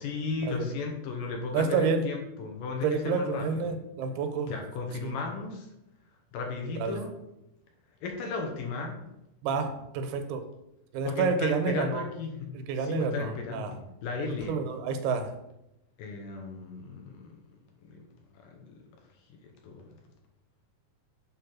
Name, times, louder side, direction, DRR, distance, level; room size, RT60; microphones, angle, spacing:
voice 1, 0.0-3.7 4.5-5.7 6.3-7.1 8.0-9.0 11.0-12.5 12.8-14.6 16.0-17.3 17.8-18.0 18.4-18.8 19.6-19.9, left 4 dB, 75° left, 3 dB, 2.3 m, -35 dB
voice 2, 1.5-2.0 2.8-4.5 5.0-5.1 6.8-7.0 9.4-10.4 10.9-12.0 12.7-13.7 14.5-15.3, right 5 dB, 85° right, 7 dB, 2.8 m, -29 dB
7.7 x 3.5 x 6.0 m, 0.88 s
omnidirectional pair, 4.4 m